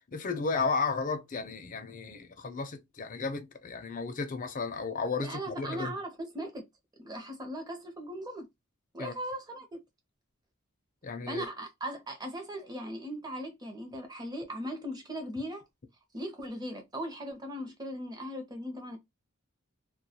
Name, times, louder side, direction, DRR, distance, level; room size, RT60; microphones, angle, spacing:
voice 1, 0.1-6.0 9.0-9.1 11.0-11.5, left 4 dB, 40° left, 0.5 m, -33 dB
voice 2, 5.2-6.6 7.0-8.4 8.9-9.8 11.3-15.6 16.1-19.0, equal, 20° right, 0.7 m, -38 dB
2.3 x 2.2 x 2.7 m
head